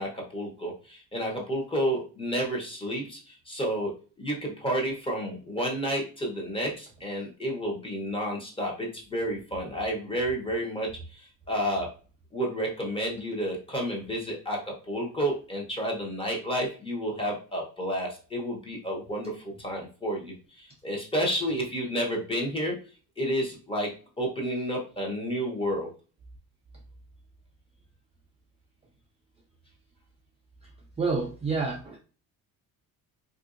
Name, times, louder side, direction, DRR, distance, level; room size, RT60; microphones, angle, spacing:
voice 1, 0.0-3.9 4.2-11.9 12.3-22.7 23.2-25.9, equal, 15° left, -1 dB, 0.8 m, -31 dB
voice 2, 31.0-32.0, right 4 dB, 20° right, -2 dB, 0.4 m, -28 dB
3.5 x 2.6 x 2.5 m, 0.37 s
cardioid pair, 155°, 34 cm